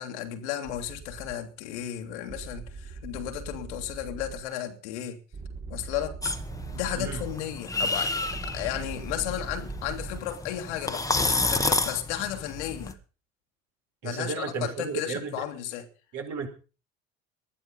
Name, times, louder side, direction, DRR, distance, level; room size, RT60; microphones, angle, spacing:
voice 1, 0.0-5.2 5.7-6.4 6.7-13.0 14.0-15.9, left 11 dB, 65° left, 2.6 m, -34 dB
sound 1, 0.6-1.3 2.3-4.4 5.3-7.4 8.3-10.2, right 4 dB, 30° right, 3.7 m, -40 dB
sound 2, 6.2-12.9, left 2 dB, 10° left, 2.0 m, -30 dB
voice 2, 14.0-15.3 16.1-16.5, right 5 dB, 50° right, 5.1 m, -33 dB
20.0 x 12.0 x 5.5 m
figure-of-eight pair, 60°, 37 cm